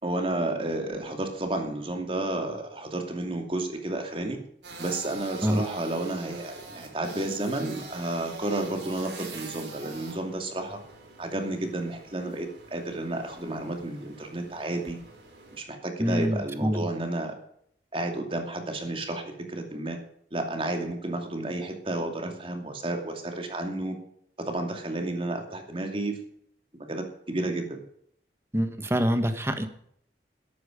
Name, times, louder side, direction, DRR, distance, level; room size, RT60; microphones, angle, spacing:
voice 1, 0.0-4.4 4.8-10.8 11.2-15.0 15.5-17.3 17.9-20.0 20.3-24.0 24.4-26.2 26.9-27.8, right 1 dB, 30° right, 4 dB, 2.5 m, -31 dB
sound 1, 4.6-15.6, right 3 dB, 85° right, 4.2 m, -45 dB
voice 2, 16.0-16.9 28.5-29.7, equal, 15° right, 9 dB, 1.4 m, -25 dB
13.5 x 12.0 x 5.3 m, 0.68 s
head